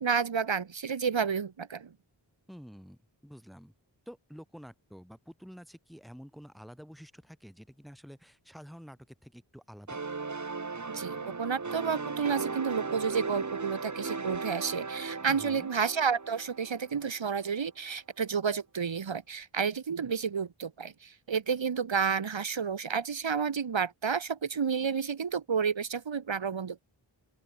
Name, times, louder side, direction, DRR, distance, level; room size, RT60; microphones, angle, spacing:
voice 1, 0.0-1.9 10.9-26.8, right 6 dB, 80° right, 1.2 m, -31 dB
voice 2, 2.5-3.7 4.1-10.0 15.3-15.7, equal, ahead, 3.2 m, -49 dB
sound 1, 9.9-17.4, right 4 dB, 40° right, 1.2 m, -37 dB
open air
wide cardioid pair, 55°, 45 cm